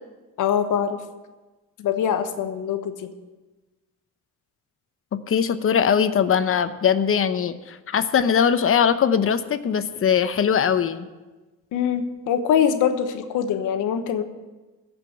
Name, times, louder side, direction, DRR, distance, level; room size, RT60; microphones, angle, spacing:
voice 1, 0.4-1.0 1.8-3.1 11.7-14.2, left 8 dB, 90° left, 8 dB, 1.2 m, -23 dB
voice 2, 5.1-11.1, left 7 dB, 45° left, 11 dB, 0.9 m, -21 dB
14.5 x 5.3 x 9.1 m, 1.2 s
cardioid pair, 90°, 30 cm